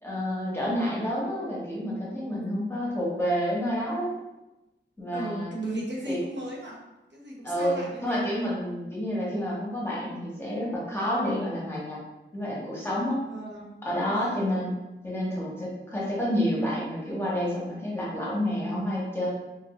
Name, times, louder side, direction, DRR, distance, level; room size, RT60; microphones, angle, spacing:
voice 1, 0.0-4.1 5.0-5.5 6.1-6.2 7.4-12.0 12.3-13.2 13.8-14.7 15.0-19.3, equal, 10° left, -6 dB, 1.0 m, -29 dB
voice 2, 5.1-6.8 7.1-8.3 13.3-13.7 14.1-14.8, right 1 dB, 65° right, -3 dB, 0.7 m, -36 dB
2.9 x 2.5 x 2.9 m, 1.0 s
wide cardioid pair, 60°, 20 cm